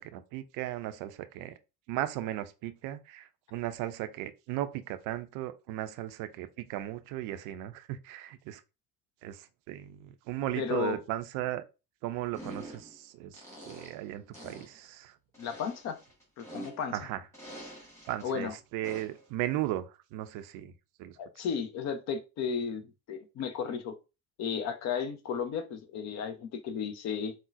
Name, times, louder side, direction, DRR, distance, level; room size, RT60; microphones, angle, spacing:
voice 1, 0.0-1.5 1.9-8.6 9.2-11.6 12.0-13.4 13.7-15.1 16.9-17.2 18.1-20.7 21.0-21.2, right 14 dB, 45° right, 0.4 m, -36 dB
voice 2, 10.6-11.0 15.4-16.0 16.4-17.0 18.2-18.5 21.2-23.9 24.4-27.3, left 6 dB, 35° left, 0.6 m, -34 dB
sound 1, 12.3-13.0 13.3-14.1 14.3-14.8 15.3-17.0 17.3-18.2 18.8-19.2, right 1 dB, 5° left, 1.8 m, -46 dB
3.7 x 2.1 x 2.5 m
figure-of-eight pair, 55°, 47 cm